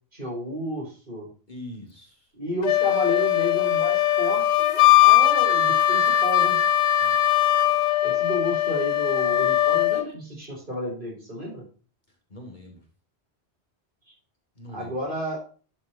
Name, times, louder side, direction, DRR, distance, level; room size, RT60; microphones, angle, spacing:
voice 1, 0.1-1.3 2.3-6.6 8.0-11.6 14.7-15.4, equal, 50° right, -2 dB, 4.7 m, -31 dB
voice 2, 1.5-2.3 7.0-7.2 12.3-12.9 14.5-15.0, left 1 dB, 45° left, 0 dB, 2.6 m, -42 dB
Wind instrument woodwind instrument, 2.6-10.1, left 13 dB, 75° left, 1.0 m, -20 dB
11.0 x 7.0 x 2.7 m, 0.39 s
omnidirectional pair, 1.1 m